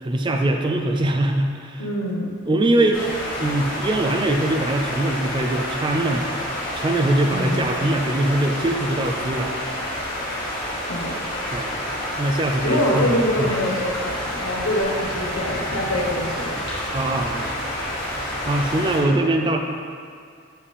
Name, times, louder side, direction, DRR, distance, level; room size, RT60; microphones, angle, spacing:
voice 1, 0.0-1.8 2.4-3.1 3.4-6.3 6.8-9.5 11.5-11.9 12.2-13.5 16.9-17.6 18.4-19.6, right 1 dB, 20° right, 3 dB, 0.3 m, -22 dB
voice 2, 1.8-2.3 7.3-7.7 10.9-11.1 12.6-16.6, equal, 85° left, -1 dB, 1.0 m, -24 dB
sound 1, 2.9-19.0, equal, 20° left, 1.2 m, -29 dB
7.3 x 5.2 x 3.3 m, 2.2 s
head